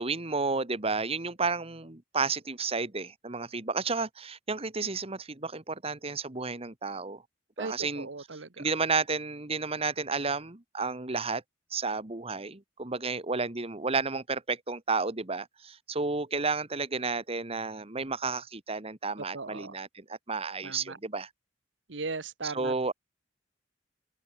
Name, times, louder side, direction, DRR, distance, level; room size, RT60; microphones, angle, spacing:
voice 1, 0.0-7.2 7.6-8.1 8.6-11.4 11.7-21.3 22.4-22.9, right 4 dB, 35° right, 1.7 m, -32 dB
voice 2, 7.6-8.6 19.3-19.7 20.6-21.0 21.9-22.9, right 3 dB, 80° right, 1.4 m, -38 dB
open air
head